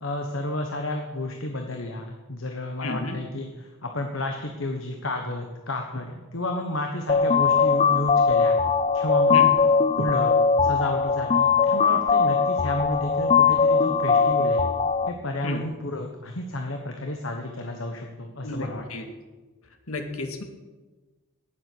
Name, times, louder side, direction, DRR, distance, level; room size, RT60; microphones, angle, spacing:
voice 1, 0.0-8.6 8.9-9.4 10.0-14.6 15.1-18.8, left 1 dB, 65° left, 3 dB, 1.3 m, -31 dB
voice 2, 2.8-3.2 9.3-9.5 15.4-15.6 18.4-19.1 19.9-20.4, left 2 dB, 80° left, 4 dB, 2.1 m, -32 dB
sound 1, 7.1-15.1, left 5 dB, 30° left, 0.5 m, -20 dB
18.5 x 7.9 x 6.2 m, 1.3 s
head